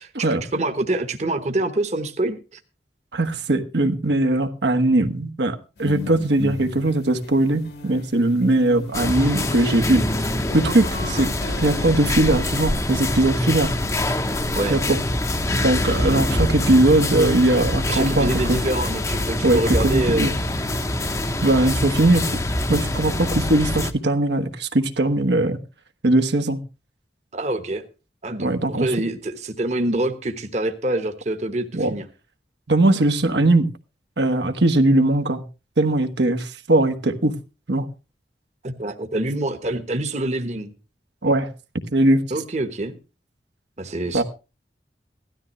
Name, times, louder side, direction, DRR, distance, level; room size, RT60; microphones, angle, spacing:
voice 1, 0.0-2.6 14.5-14.8 17.9-20.3 27.3-27.8 28.2-32.1 38.6-40.7 42.3-42.9 43.8-44.2, right 1 dB, 40° right, 8 dB, 1.1 m, -26 dB
voice 2, 3.1-10.3 10.5-11.3 11.6-13.7 14.7-15.0 15.6-18.6 19.4-20.3 21.4-22.4 22.7-25.6 26.0-26.6 28.4-28.9 31.7-31.9 32.7-33.7 34.2-35.4 35.8-37.3 37.7-37.9 41.2-41.5 41.9-42.2 44.1-44.2, right 2 dB, 80° right, 6 dB, 1.3 m, -20 dB
sound 1, 5.8-8.0 8.4-12.3, left 2 dB, 70° left, 1.8 m, -34 dB
sound 2, 8.9-23.9, left 1 dB, 20° left, 0.8 m, -24 dB
16.5 x 13.0 x 3.1 m, 0.30 s
head